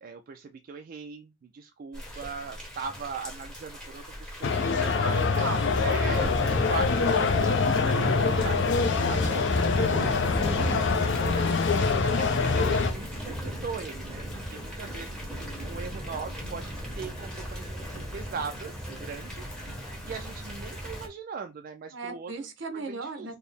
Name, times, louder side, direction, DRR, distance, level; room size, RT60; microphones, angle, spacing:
voice 1, 0.0-5.2 5.8-8.6 9.0-10.1 10.8-15.2 15.6-18.7 19.0-19.5 20.1-22.3 22.7-23.3, right 5 dB, 50° right, 0.3 m, -40 dB
Thunder / Rain, 1.9-21.1, equal, 5° left, 1.0 m, -36 dB
sound 1, 4.4-12.9, left 4 dB, 65° left, 0.5 m, -25 dB
voice 2, 4.9-5.7 9.1-9.9 21.9-23.4, right 3 dB, 70° right, 0.8 m, -38 dB
4.4 x 2.0 x 3.3 m
head